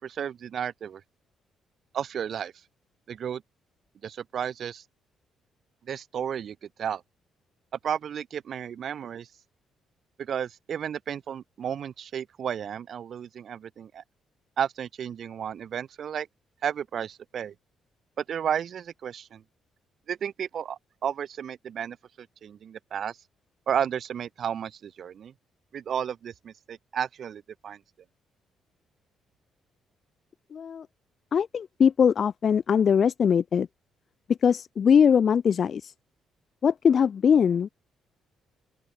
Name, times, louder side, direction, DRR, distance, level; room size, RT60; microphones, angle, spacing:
voice 1, 0.0-1.0 1.9-2.5 3.1-3.4 4.0-4.8 5.8-7.0 7.8-9.3 10.2-14.0 14.6-16.3 16.6-17.5 18.2-19.4 20.1-23.2 23.7-25.3 25.7-27.8, right 8 dB, 60° right, 4.2 m, -33 dB
voice 2, 30.5-30.9 31.3-33.7 34.4-35.9 36.6-37.7, left 7 dB, 50° left, 3.4 m, -21 dB
open air
cardioid pair, 90°, 0 cm